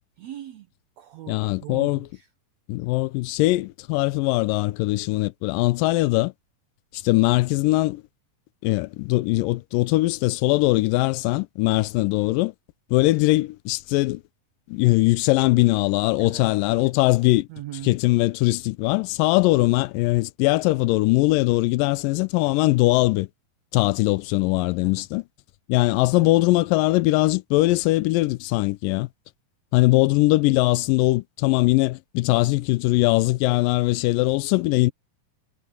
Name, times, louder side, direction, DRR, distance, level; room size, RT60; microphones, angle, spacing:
voice 1, 0.2-0.7 1.0-2.3 16.2-16.4 17.5-17.9 24.8-25.0 26.2-26.4, right 13 dB, 70° right, 1.9 m, -39 dB
voice 2, 1.3-2.1 2.7-6.3 6.9-8.0 8.6-12.5 12.9-14.2 14.7-17.5 17.8-23.3 23.7-25.2 25.7-29.1 29.7-34.9, left 20 dB, 90° left, 2.3 m, -21 dB
omnidirectional pair, 3.9 m